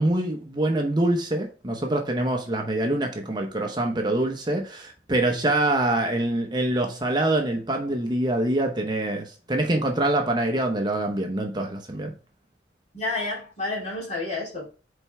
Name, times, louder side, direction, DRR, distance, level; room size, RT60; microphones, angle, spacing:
voice 1, 0.0-12.1, right 1 dB, 25° right, 0.8 m, -25 dB
voice 2, 12.9-14.7, left 2 dB, 40° left, 2.8 m, -30 dB
5.2 x 4.5 x 4.3 m
head